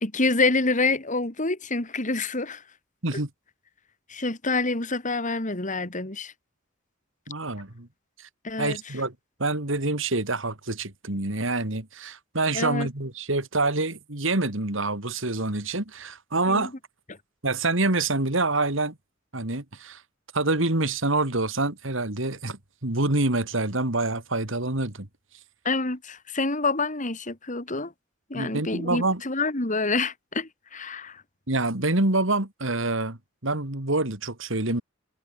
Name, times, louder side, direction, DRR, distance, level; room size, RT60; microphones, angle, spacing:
voice 1, 0.0-2.6 3.1-3.2 4.1-6.3 8.4-8.8 12.5-12.9 16.5-16.7 25.6-27.9 28.3-31.2, left 3 dB, 40° left, 2.7 m, -27 dB
voice 2, 7.3-7.9 8.2-8.3 8.6-9.1 9.4-16.7 17.4-19.0 19.3-20.0 20.3-25.1 28.3-29.2 31.5-34.8, right 2 dB, 65° right, 2.9 m, -26 dB
head